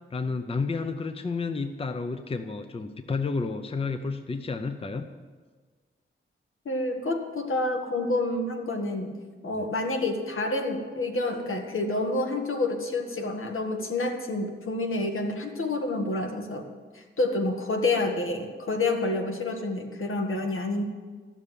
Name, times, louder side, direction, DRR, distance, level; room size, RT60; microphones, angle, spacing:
voice 1, 0.1-5.1 9.5-9.7, left 4 dB, 25° left, 8 dB, 0.6 m, -31 dB
voice 2, 6.7-9.2 9.4-16.7 16.9-20.8, left 2 dB, 80° left, 3 dB, 1.8 m, -28 dB
13.0 x 7.2 x 10.0 m, 1.4 s
wide cardioid pair, 130°, 21 cm